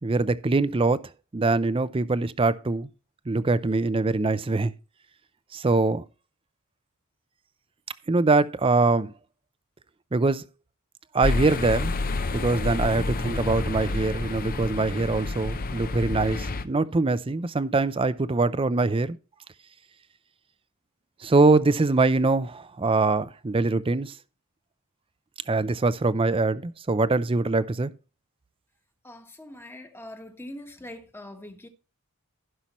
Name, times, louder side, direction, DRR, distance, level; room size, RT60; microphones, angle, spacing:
voice 1, 0.0-1.0 1.3-2.9 3.3-4.7 5.5-6.0 8.1-9.1 10.1-10.4 11.1-11.9 12.3-19.2 21.2-24.1 25.5-27.9, right 3 dB, 25° right, 0.5 m, -23 dB
Traffic in Crieff, 11.2-16.6, left 3 dB, 40° left, 0.7 m, -29 dB
voice 2, 29.0-31.7, left 1 dB, 10° left, 1.2 m, -42 dB
16.0 x 5.7 x 3.0 m
head